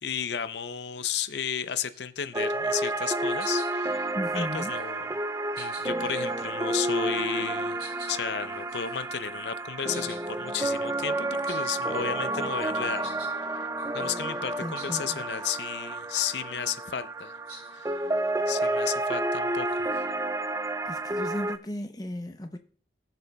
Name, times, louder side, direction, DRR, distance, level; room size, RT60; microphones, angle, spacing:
voice 1, 0.0-5.1 5.6-13.1 13.5-13.7 13.9-17.4 17.7-17.9 18.5-20.0, left 8 dB, 80° left, 0.6 m, -33 dB
sound 1, 1.6-2.0 2.4-2.6 2.8-3.1 3.4-4.0 4.4-5.0 5.5-6.4 7.2-7.3 7.8-12.0 12.3-13.3 13.8-14.1 14.7-14.9 15.3-15.6 16.1-16.3 17.5-17.7 18.4-19.9, right 3 dB, 55° right, 5.9 m, -49 dB
sound 2, 2.3-21.6, right 2 dB, 15° right, 0.3 m, -30 dB
voice 2, 4.1-4.7 14.6-15.2 20.9-22.6, left 1 dB, 20° left, 0.6 m, -35 dB
19.5 x 6.8 x 2.3 m
head